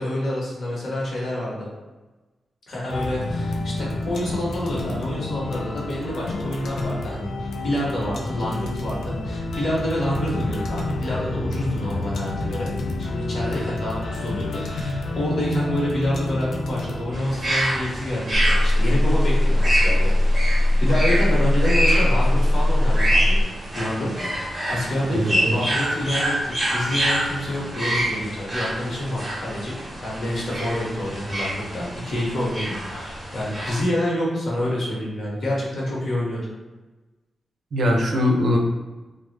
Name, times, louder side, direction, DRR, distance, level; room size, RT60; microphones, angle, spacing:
voice 1, 0.0-1.7 2.7-12.7 13.0-23.4 23.7-24.2 24.7-29.7 30.0-36.5, left 1 dB, 55° left, -5 dB, 1.0 m, -27 dB
sound 1, 2.9-18.2, left 2 dB, 80° left, 0.4 m, -29 dB
sound 2, 17.1-33.8, right 1 dB, 10° right, 0.8 m, -27 dB
sound 3, 18.3-23.4, left 1 dB, 10° left, 0.5 m, -19 dB
voice 2, 25.1-25.6 37.7-38.6, left 1 dB, 55° right, 1 dB, 0.4 m, -21 dB
3.2 x 2.0 x 3.2 m, 1.2 s
wide cardioid pair, 170°, 0 cm